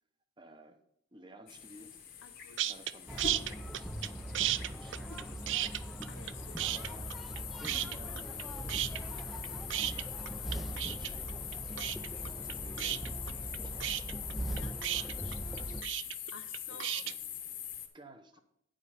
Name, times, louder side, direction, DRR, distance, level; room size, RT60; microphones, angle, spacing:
voice 1, 0.4-0.8 1.1-2.0 2.6-6.2 6.6-7.1 7.6-11.4 11.6-14.5 15.0-15.9 16.7-17.2 17.9-18.4, right 1 dB, 25° right, 8 dB, 0.8 m, -56 dB
sound 1, 1.5-17.9, left 9 dB, 45° left, 1.0 m, -44 dB
voice 2, 2.2-2.7 6.1-6.9 14.5-14.8 16.3-17.0, left 3 dB, 80° left, 7 dB, 0.7 m, -53 dB
sound 2, 2.6-2.9 3.2-4.1 4.3-6.3 6.6-7.4 7.6-8.4 8.7-17.1, right 13 dB, 70° right, 0.4 m, -34 dB
sound 3, 3.1-15.8, right 1 dB, ahead, 0.4 m, -41 dB
9.6 x 5.1 x 5.7 m, 0.77 s
head